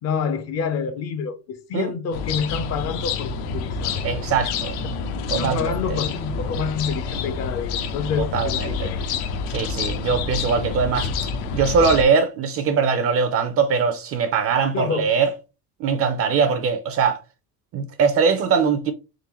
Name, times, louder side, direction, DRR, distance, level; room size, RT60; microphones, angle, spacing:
voice 1, 0.0-4.1 5.4-9.0 14.7-15.1, left 6 dB, 40° left, 0.4 m, -28 dB
sound 1, 2.1-12.0, left 5 dB, 90° left, 0.9 m, -28 dB
voice 2, 4.0-4.7 5.3-5.7 8.2-8.9 9.5-11.1 11.5-15.3 15.8-17.2 17.7-18.9, right 5 dB, 35° right, 0.4 m, -21 dB
3.8 x 3.8 x 2.9 m
cardioid pair, 170°, 43 cm